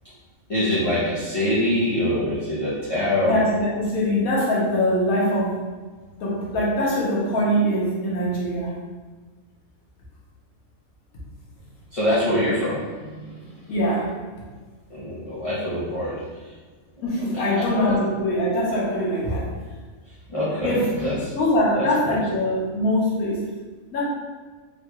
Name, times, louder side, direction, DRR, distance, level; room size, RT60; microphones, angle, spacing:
voice 1, 0.5-3.4 11.9-13.5 14.9-16.2 17.5-18.0 20.3-21.3 21.7-22.2, left 1 dB, 35° left, -10 dB, 0.5 m, -24 dB
voice 2, 3.2-5.6 6.2-8.7 13.7-14.1 17.0-19.5 20.6-20.9 21.3-23.4 23.9-24.0, equal, 85° left, -5 dB, 1.4 m, -22 dB
3.7 x 2.3 x 2.9 m, 1.4 s
omnidirectional pair, 1.5 m